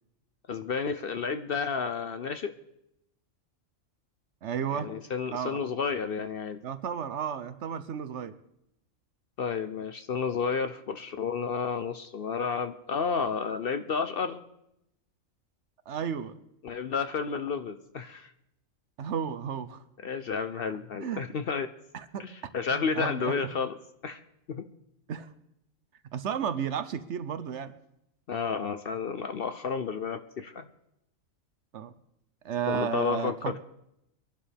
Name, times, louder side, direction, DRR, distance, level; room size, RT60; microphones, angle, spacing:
voice 1, 0.5-2.5 4.7-6.6 9.4-14.4 16.6-18.3 20.0-21.7 22.2-23.8 24.0-24.2 24.5-24.6 28.3-30.7 32.7-33.6, left 5 dB, 55° left, 9 dB, 0.7 m, -31 dB
voice 2, 4.4-4.9 5.3-5.6 6.6-8.3 15.9-16.3 19.0-19.8 21.0-21.2 21.9-22.3 22.7-23.3 25.1-25.3 26.1-27.7 31.7-31.9 32.4-33.6, right 8 dB, 65° right, 12 dB, 1.0 m, -33 dB
24.0 x 11.5 x 3.4 m, 0.81 s
omnidirectional pair, 1.4 m